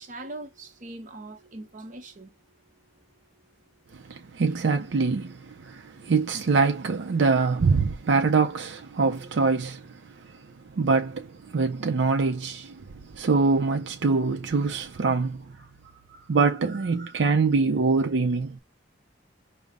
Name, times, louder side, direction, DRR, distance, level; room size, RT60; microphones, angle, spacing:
voice 1, 0.0-2.3, right 2 dB, 45° right, 0.8 m, -41 dB
voice 2, 4.1-9.8 10.8-11.3 11.5-12.8 13.1-15.4 16.3-18.6, right 4 dB, 70° right, 0.5 m, -24 dB
5.3 x 2.0 x 3.5 m
head